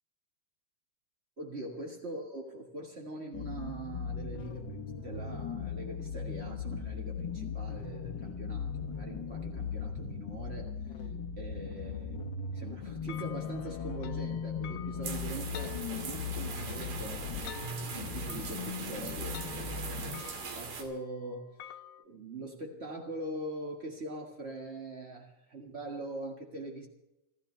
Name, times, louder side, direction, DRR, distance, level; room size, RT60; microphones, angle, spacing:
voice 1, 1.4-11.1 11.4-12.2 12.5-17.3 17.6-21.7 22.0-26.9, right 2 dB, 35° right, 0 dB, 1.0 m, -43 dB
sound 1, 3.3-20.2, left 5 dB, 60° left, 1.2 m, -38 dB
sound 2, 13.1-22.0, left 9 dB, 85° left, 2.6 m, -50 dB
sound 3, 15.0-20.8, right 5 dB, 70° right, 3.8 m, -41 dB
29.0 x 13.0 x 3.4 m, 0.93 s
omnidirectional pair, 4.0 m